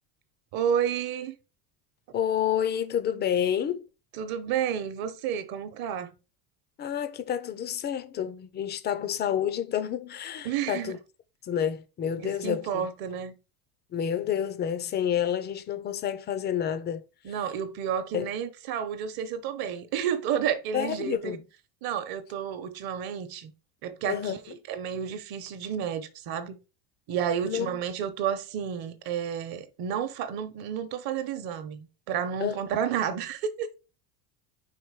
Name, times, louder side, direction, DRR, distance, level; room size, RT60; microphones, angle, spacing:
voice 1, 0.5-1.4 4.1-6.1 10.4-11.0 12.2-13.3 17.2-21.4 21.8-23.5 23.8-26.6 27.1-33.7, right 8 dB, 50° right, 0.9 m, -31 dB
voice 2, 2.1-3.8 6.8-11.0 11.4-12.9 13.9-17.0 18.1-18.3 20.7-21.4 24.1-24.4 27.4-27.8 32.4-32.6, left 9 dB, 25° left, 0.4 m, -29 dB
4.9 x 4.6 x 4.7 m
cardioid pair, 165°, 46 cm